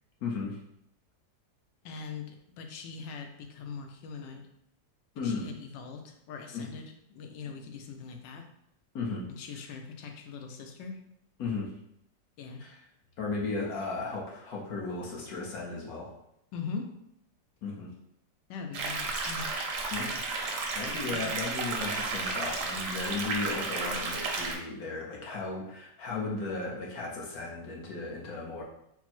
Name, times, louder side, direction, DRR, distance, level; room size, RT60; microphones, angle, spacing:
voice 1, 0.2-0.6 5.2-5.5 6.5-6.6 8.9-9.3 11.4-11.7 12.6-12.8 13.2-16.1 17.6-17.9 19.9-20.2 20.7-28.6, left 3 dB, 60° left, -2 dB, 1.2 m, -35 dB
voice 2, 1.8-4.5 5.1-8.5 9.3-11.0 12.4-12.7 16.5-17.0 18.5-19.5 21.1-21.3, left 5 dB, 85° left, 4 dB, 1.3 m, -41 dB
sound 1, 18.7-24.6, right 3 dB, 65° right, 0.8 m, -33 dB
4.3 x 2.0 x 4.2 m, 0.76 s
omnidirectional pair, 1.9 m